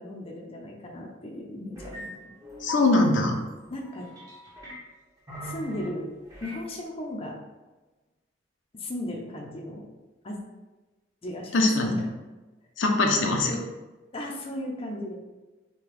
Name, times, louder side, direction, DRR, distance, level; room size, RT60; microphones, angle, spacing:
voice 1, 0.0-2.1 3.7-4.1 5.4-6.1 6.4-7.4 8.7-9.8 10.2-10.4 11.2-11.7 13.1-13.6 14.1-15.2, left 1 dB, 30° left, 0 dB, 0.6 m, -36 dB
sound 1, 1.8-2.1 2.4-2.8 3.8-4.8 5.3-5.9 6.3-6.7, left 2 dB, 20° right, 0.9 m, -40 dB
voice 2, 2.6-3.4 11.5-12.1 12.8-13.6, left 2 dB, 75° left, 1 dB, 0.7 m, -22 dB
5.8 x 2.3 x 3.3 m, 1.2 s
head